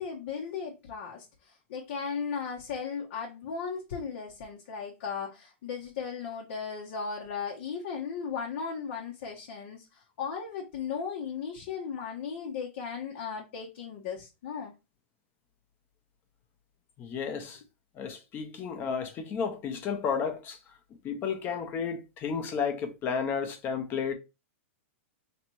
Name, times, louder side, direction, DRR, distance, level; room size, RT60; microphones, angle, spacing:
voice 1, 0.0-14.7, left 6 dB, 60° left, 1.0 m, -36 dB
voice 2, 17.0-17.6 17.9-20.6 21.0-24.1, left 6 dB, 30° left, 0.9 m, -32 dB
4.2 x 3.2 x 3.1 m
hypercardioid pair, 135°, 7 cm